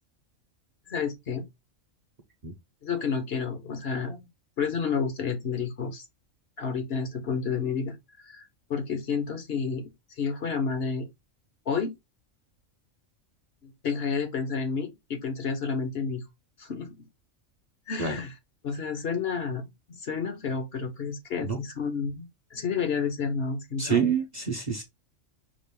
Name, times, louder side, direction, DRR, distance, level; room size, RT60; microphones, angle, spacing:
voice 1, 0.9-1.4 2.8-4.3 4.6-6.0 6.6-9.8 10.2-11.1 11.7-11.9 13.6-16.2 16.6-17.0 17.9-18.3 18.6-24.0, left 5 dB, 55° left, 1.0 m, -30 dB
voice 2, 23.8-24.8, right 7 dB, 40° right, 0.7 m, -27 dB
5.2 x 2.5 x 3.4 m
omnidirectional pair, 1.4 m